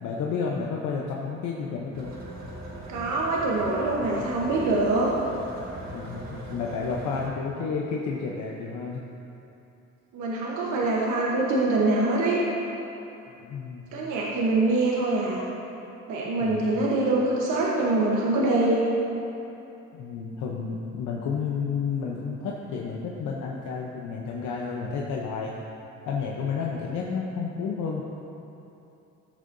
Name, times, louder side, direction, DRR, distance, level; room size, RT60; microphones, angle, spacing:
voice 1, 0.0-2.1 5.9-6.2 6.5-9.0 13.4-13.9 16.4-16.7 19.9-25.5 26.0-28.0, left 5 dB, 85° left, -2 dB, 0.8 m, -31 dB
sound 1, 1.9-7.3, right 1 dB, 60° right, 1.8 m, -40 dB
voice 2, 2.9-5.1 10.1-12.4 13.9-15.4 16.1-18.9, right 2 dB, 85° right, -4 dB, 1.1 m, -24 dB
14.5 x 6.7 x 2.7 m, 2.9 s
cardioid pair, 90°, 30 cm